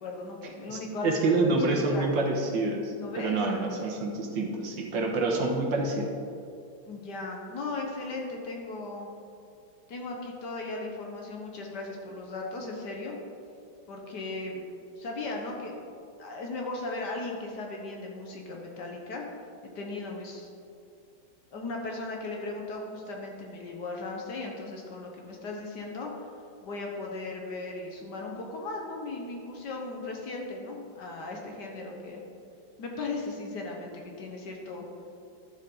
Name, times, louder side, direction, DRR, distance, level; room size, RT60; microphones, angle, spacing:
voice 1, 0.0-2.1 3.0-3.6 6.8-9.1 9.9-13.2 13.9-14.6 15.0-15.9 16.2-19.2 19.7-20.5 21.5-26.1 26.6-32.2 32.8-34.8, left 2 dB, 60° left, 0 dB, 1.6 m, -37 dB
voice 2, 0.7-6.1, right 2 dB, 65° right, 0 dB, 1.7 m, -27 dB
11.5 x 7.2 x 3.9 m, 2.4 s
omnidirectional pair, 2.2 m